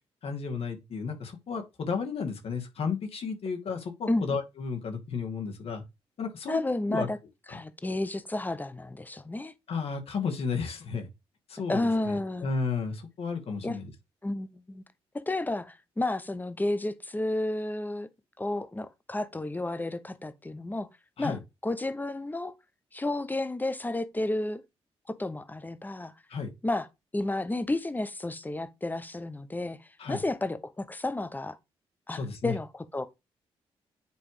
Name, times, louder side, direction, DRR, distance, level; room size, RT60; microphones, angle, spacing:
voice 1, 0.2-5.8 6.2-6.6 6.9-7.1 7.5-7.6 9.7-11.1 11.5-13.9 21.2-21.4 26.3-26.5 30.0-30.2 32.1-32.5, left 5 dB, 65° left, 2.3 m, -33 dB
voice 2, 6.5-7.2 7.5-9.5 11.7-12.5 13.6-13.8 14.2-14.8 15.1-18.1 18.4-20.9 21.2-21.4 21.6-22.5 22.9-24.6 25.1-26.1 26.6-26.9 27.1-29.8 30.1-31.6 32.1-33.1, left 2 dB, 15° left, 1.0 m, -31 dB
9.3 x 3.4 x 5.1 m
cardioid pair, 75°, 11 cm